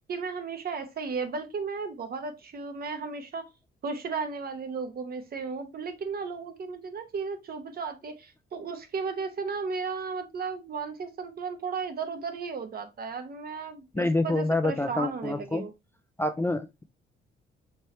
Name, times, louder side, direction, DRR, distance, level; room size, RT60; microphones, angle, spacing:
voice 1, 0.1-3.4 3.8-15.7, right 5 dB, 50° right, 0.9 m, -34 dB
voice 2, 13.9-15.7 16.2-16.8, left 2 dB, 10° left, 0.4 m, -27 dB
4.5 x 3.0 x 3.2 m
cardioid pair, 90°, 20 cm